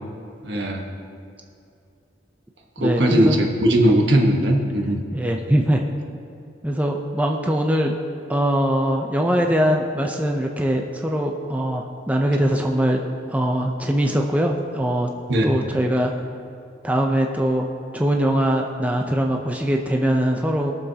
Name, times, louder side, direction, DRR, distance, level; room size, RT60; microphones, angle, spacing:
voice 1, 0.4-0.9 2.8-5.0 15.3-15.6, right 1 dB, 65° right, 1 dB, 1.3 m, -19 dB
voice 2, 2.8-3.4 5.1-5.8 6.6-7.9 8.3-13.0 13.3-15.1 15.4-16.1 16.8-17.7 17.9-20.7, equal, 10° right, 1 dB, 0.5 m, -22 dB
21.0 x 7.0 x 2.8 m, 2.5 s
head